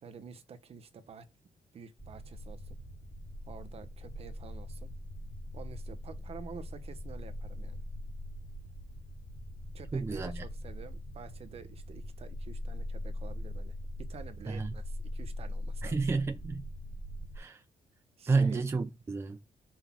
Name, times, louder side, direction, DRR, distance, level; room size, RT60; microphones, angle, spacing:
voice 1, 0.0-1.3 1.7-2.8 3.5-4.9 5.5-7.8 9.7-16.0 18.2-18.6, right 6 dB, 45° right, 1.1 m, -49 dB
sound 1, 2.0-17.4, left 1 dB, 15° left, 2.2 m, -41 dB
voice 2, 9.9-10.4 14.5-14.7 15.8-16.7 17.4-17.6 18.3-19.4, right 4 dB, 20° right, 0.6 m, -30 dB
6.2 x 4.7 x 5.9 m
wide cardioid pair, 180°, 14 cm